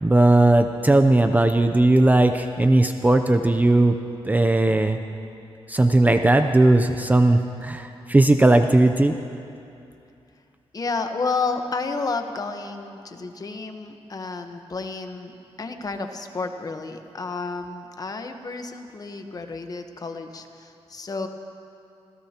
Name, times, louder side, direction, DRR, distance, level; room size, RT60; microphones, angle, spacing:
voice 1, 0.0-3.9 4.2-5.0 5.7-9.1, right 2 dB, 15° right, 6 dB, 0.5 m, -17 dB
voice 2, 10.7-21.3, left 4 dB, 35° left, 6 dB, 1.1 m, -31 dB
26.0 x 16.5 x 2.9 m, 2.7 s
wide cardioid pair, 110°, 11 cm